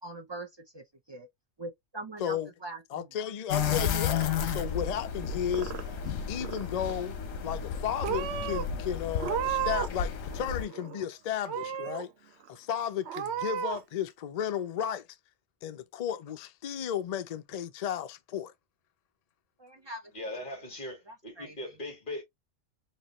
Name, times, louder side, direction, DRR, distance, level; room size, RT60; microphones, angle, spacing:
voice 1, 0.0-1.3 1.6-3.1 19.6-20.1 21.1-21.7, right 2 dB, 45° right, 0.3 m, -43 dB
voice 2, 2.2-2.5 2.9-6.0 6.3-7.1 7.4-15.1 15.6-18.5, left 9 dB, 70° left, 0.4 m, -34 dB
sound 1, 3.5-10.6, left 7 dB, 85° left, 1.1 m, -32 dB
Purr / Meow, 5.2-6.1 6.4-7.0 7.6-7.8 8.0-8.6 9.2-10.0 10.3-11.0 11.4-12.0 12.5-12.6 13.1-13.8, right 8 dB, 65° right, 0.8 m, -33 dB
voice 3, 20.1-22.2, left 1 dB, 40° left, 2.2 m, -39 dB
4.2 x 2.6 x 3.0 m
omnidirectional pair, 1.3 m